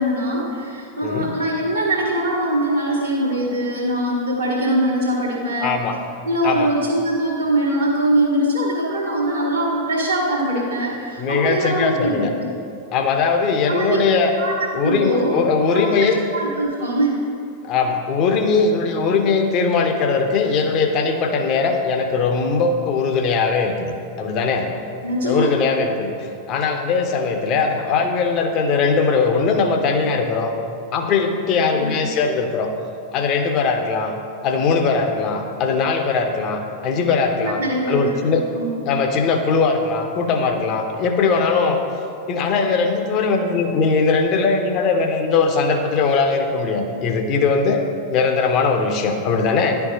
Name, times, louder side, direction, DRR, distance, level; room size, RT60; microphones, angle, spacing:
voice 1, 0.0-5.8 6.2-12.5 13.7-14.0 14.4-14.5 14.8-15.3 15.7-17.1 25.0-25.5 31.7-31.9 37.4-38.2 38.5-38.8, right 1 dB, 80° right, -8 dB, 1.1 m, -22 dB
voice 2, 5.6-6.0 6.4-6.7 11.2-12.3 12.9-14.3 14.7-16.2 17.6-24.7 25.2-30.5 30.9-32.7 33.1-34.1 34.4-37.6 37.9-38.4 38.9-41.8 42.3-47.8 48.1-49.8, left 4 dB, 40° left, 5 dB, 0.6 m, -20 dB
10.5 x 4.5 x 2.7 m, 2.5 s
figure-of-eight pair, 90°, 0 cm